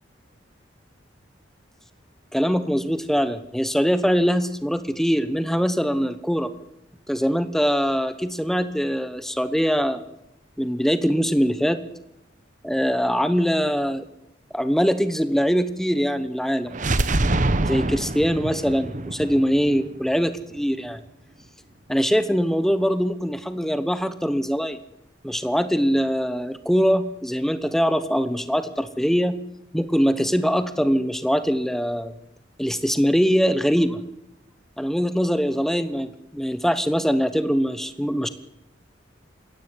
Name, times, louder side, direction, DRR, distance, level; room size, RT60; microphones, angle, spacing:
voice 1, 2.3-6.5 7.1-10.0 10.6-11.8 12.6-14.1 14.5-16.7 17.6-21.0 21.9-24.8 25.2-29.4 29.7-32.1 32.6-34.0 34.8-38.3, equal, ahead, 12 dB, 1.1 m, -22 dB
sound 1, 16.7-20.6, right 2 dB, 40° right, 1.0 m, -25 dB
21.0 x 16.5 x 9.7 m, 0.86 s
head